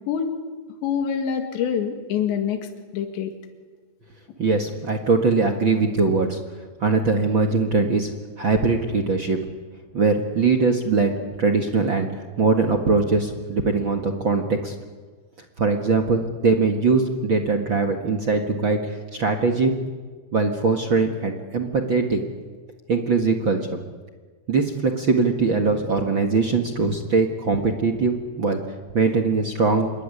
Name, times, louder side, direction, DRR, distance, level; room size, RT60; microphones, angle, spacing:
voice 1, 0.8-2.6 2.9-3.3, left 8 dB, 80° left, 5 dB, 4.4 m, -25 dB
voice 2, 4.4-6.4 6.8-8.1 8.4-9.4 9.9-14.7 15.6-19.7 20.3-22.2 22.9-23.8 24.5-28.6 28.9-29.9, right 4 dB, 55° right, 4 dB, 1.3 m, -21 dB
27.0 x 22.0 x 9.9 m, 1.4 s
omnidirectional pair, 5.1 m